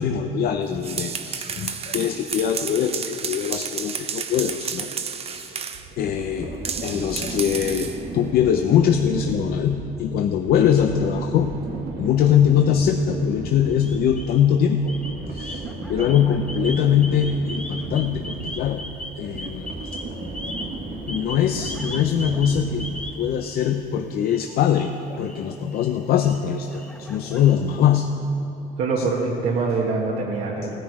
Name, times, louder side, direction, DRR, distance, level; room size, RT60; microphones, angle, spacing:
voice 1, 0.0-4.9 5.2-5.5 6.0-11.5 12.0-15.0 15.3-18.8 19.2-19.7 20.2-20.5 21.1-28.1 29.0-29.1, left 8 dB, 65° left, 6 dB, 0.6 m, -22 dB
sound 1, 0.7-5.9 6.6-8.0, right 6 dB, 35° right, 0.7 m, -31 dB
sound 2, 5.7-23.4, right 3 dB, 60° right, 1.6 m, -35 dB
sound 3, 13.7-14.5 14.8-23.9 24.2-27.9, left 1 dB, 5° left, 0.9 m, -39 dB
voice 2, 28.8-30.7, right 4 dB, 85° right, -4 dB, 1.6 m, -24 dB
16.5 x 9.9 x 4.7 m, 3.0 s
cardioid pair, 110°, 17 cm